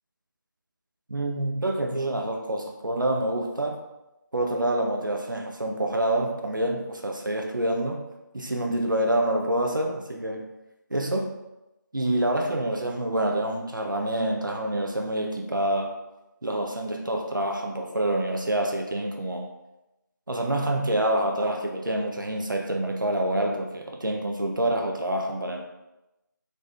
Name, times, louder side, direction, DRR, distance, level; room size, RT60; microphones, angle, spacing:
voice 1, 1.1-3.8 4.3-8.0 8.3-10.5 10.9-11.3 11.9-16.0 16.4-19.5 20.3-25.6, right 1 dB, 75° right, 2 dB, 0.6 m, -27 dB
4.0 x 3.3 x 3.2 m, 0.96 s
figure-of-eight pair, 160°, 11 cm